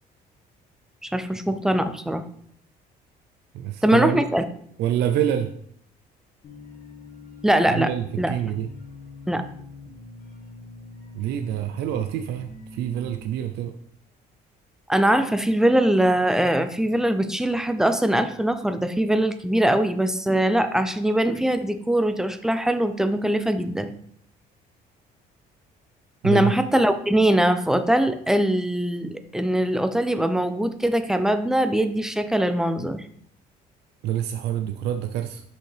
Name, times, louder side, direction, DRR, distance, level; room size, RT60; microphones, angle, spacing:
voice 1, 1.0-2.2 3.8-4.4 7.4-7.9 8.2-8.3 9.3-9.4 14.9-23.9 26.2-33.0, right 1 dB, 5° right, 10 dB, 0.5 m, -22 dB
voice 2, 3.5-4.2 4.8-5.5 7.7-8.7 11.1-13.7 26.2-26.5 34.0-35.4, right 10 dB, 80° right, 7 dB, 0.5 m, -26 dB
sound 1, 6.4-13.3, left 3 dB, 60° left, 1.5 m, -44 dB
6.3 x 5.4 x 3.3 m, 0.65 s
cardioid pair, 110°, 17 cm